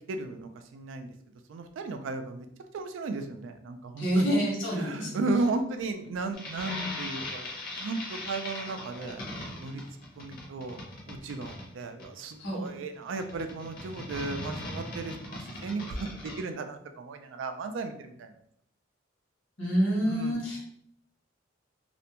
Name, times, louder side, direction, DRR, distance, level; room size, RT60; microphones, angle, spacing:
voice 1, 0.1-1.1 1.5-2.5 2.7-4.3 4.8-7.5 7.8-9.2 9.6-9.8 10.2-10.8 11.1-18.3 20.1-20.4, right 3 dB, 85° right, 7 dB, 0.3 m, -35 dB
voice 2, 4.0-5.2 12.4-12.6 19.6-20.6, equal, 70° left, -3 dB, 1.1 m, -27 dB
sound 1, 6.3-16.4, left 2 dB, 50° left, 0.7 m, -39 dB
2.4 x 2.2 x 2.8 m, 0.67 s
head